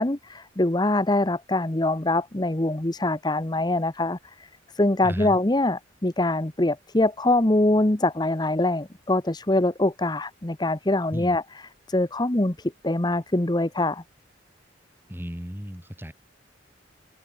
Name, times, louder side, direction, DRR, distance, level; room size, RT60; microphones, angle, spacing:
voice 1, 0.0-4.2 4.7-14.0, left 2 dB, 20° left, 1.0 m, -24 dB
voice 2, 5.0-5.4 11.1-11.3 15.1-16.1, equal, 10° right, 6.5 m, -34 dB
head